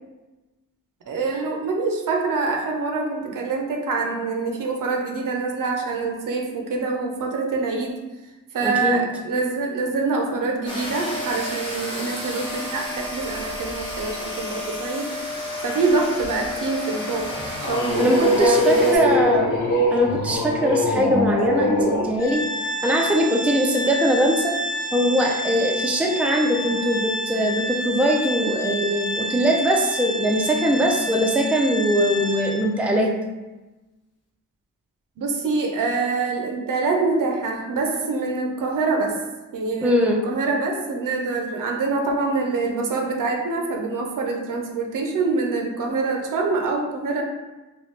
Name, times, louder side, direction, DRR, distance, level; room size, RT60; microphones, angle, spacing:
voice 1, 1.1-7.9 8.5-15.1 15.6-17.3 17.6-19.4 23.4-23.5 35.2-39.1 39.5-47.2, right 3 dB, 70° right, 2 dB, 0.6 m, -25 dB
voice 2, 8.6-9.0 18.0-19.6 19.9-22.5 22.8-24.5 24.9-33.1 39.8-40.2, equal, 5° right, 1 dB, 0.4 m, -21 dB
sound 1, 10.7-19.0, left 1 dB, 15° left, 0.9 m, -31 dB
sound 2, 17.2-22.1, equal, 75° left, 0.8 m, -22 dB
Organ, 22.2-32.8, equal, 50° left, 1.0 m, -29 dB
3.1 x 2.3 x 3.1 m, 1.1 s
cardioid pair, 80°, 33 cm